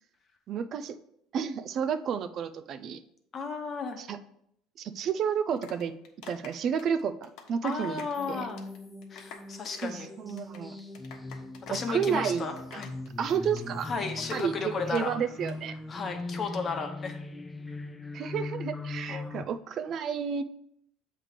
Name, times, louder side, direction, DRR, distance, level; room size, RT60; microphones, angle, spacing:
voice 1, 0.5-1.0 1.3-3.0 4.0-4.2 4.8-5.9 6.3-8.0 8.3-8.5 9.8-10.7 11.7-12.8 13.2-13.9 14.3-15.7 18.1-20.4, right 7 dB, 45° right, 11 dB, 0.4 m, -31 dB
voice 2, 3.3-4.0 7.6-8.6 9.1-10.1 11.7-12.9 13.8-15.2 15.9-17.2 19.1-19.3, left 4 dB, 35° left, 4 dB, 1.0 m, -34 dB
sound 1, 5.3-8.2 8.5-8.8 9.0-15.0 15.3-15.5, left 6 dB, 65° left, 1.2 m, -48 dB
sound 2, 8.1-19.4, left 2 dB, 10° left, 0.5 m, -40 dB
7.2 x 3.3 x 5.0 m, 0.72 s
cardioid pair, 115°, 0 cm